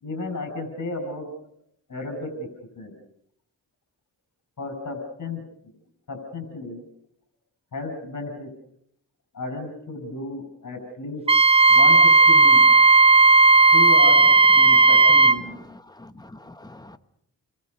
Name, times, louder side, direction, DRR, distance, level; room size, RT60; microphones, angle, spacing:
voice 1, 0.0-1.3 1.9-2.5 2.8-3.0 4.6-5.4 6.1-6.8 7.7-8.5 9.3-11.2 11.7-12.7 13.7-14.2 14.5-15.5, left 3 dB, 60° left, 6 dB, 6.0 m, -33 dB
Wind instrument woodwind instrument, 11.3-15.4, right 3 dB, 20° right, 0.9 m, -14 dB
voice 2, 15.4-17.0, left 2 dB, 10° left, 9 dB, 1.3 m, -45 dB
29.5 x 22.0 x 5.4 m, 0.71 s
cardioid pair, 100°, 33 cm